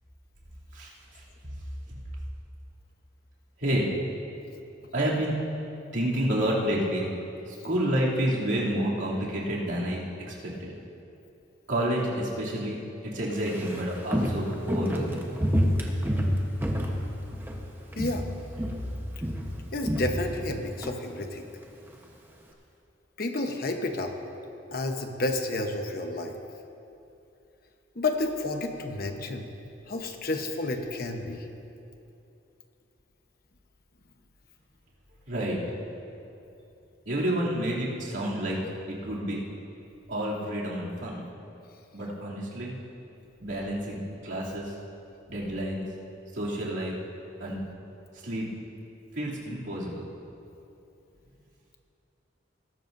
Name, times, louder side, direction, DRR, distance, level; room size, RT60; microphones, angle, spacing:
voice 1, 4.9-5.4 5.9-7.1 7.5-10.0 10.3-10.4 10.6-10.7 11.7-15.2 35.3-35.6 37.1-38.6 38.9-39.4 40.1-41.2 41.9-42.7 43.4-44.7 45.3-45.8 46.3-47.0 47.4-47.6 48.2-48.5 49.1-50.0, right 1 dB, 70° right, -6 dB, 2.9 m, -29 dB
Walk footsteps, 13.3-17.7 17.9-18.3 18.6-20.9 21.2-21.3, equal, 10° right, 1.0 m, -28 dB
voice 2, 18.0-18.3 19.7-21.5 23.2-24.1 24.7-26.4 28.0-29.5 29.9-31.4, left 2 dB, 50° left, 4 dB, 1.0 m, -30 dB
20.0 x 12.5 x 2.7 m, 2.8 s
head